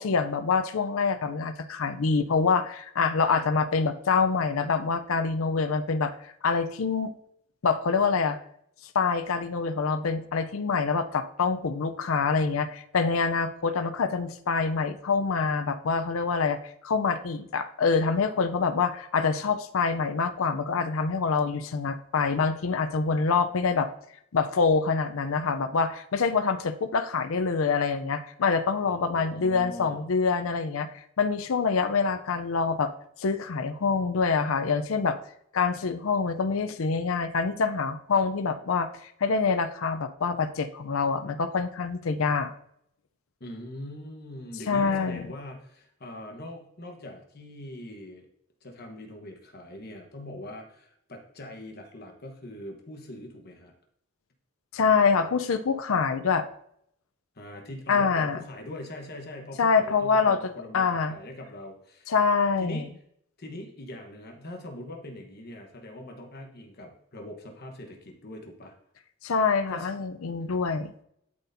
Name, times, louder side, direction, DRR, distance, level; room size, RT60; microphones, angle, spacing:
voice 1, 0.0-7.1 7.6-8.4 8.9-23.9 24.3-32.9 33.2-35.2 35.5-42.5 44.7-45.3 54.7-56.4 57.9-58.4 59.6-60.4 60.7-61.2 62.1-62.9 69.2-70.9, left 5 dB, 70° left, 10 dB, 0.5 m, -26 dB
voice 2, 28.8-30.0 43.4-48.3 48.6-53.7 57.3-62.1 62.6-62.9 63.4-68.7 69.7-69.9, left 1 dB, 50° left, 2 dB, 1.1 m, -42 dB
12.0 x 4.2 x 2.7 m, 0.70 s
head